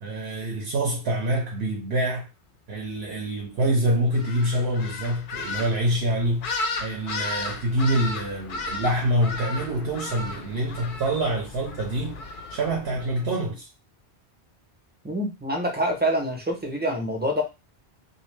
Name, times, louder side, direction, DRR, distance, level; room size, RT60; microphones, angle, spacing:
voice 1, 0.0-2.3 2.7-12.2 12.5-13.7, right 1 dB, 70° right, 1.0 m, -26 dB
sound 1, 4.1-13.2, left 3 dB, 60° left, 0.6 m, -35 dB
voice 2, 15.0-17.4, equal, 10° right, 0.6 m, -26 dB
2.6 x 2.3 x 3.2 m
omnidirectional pair, 1.1 m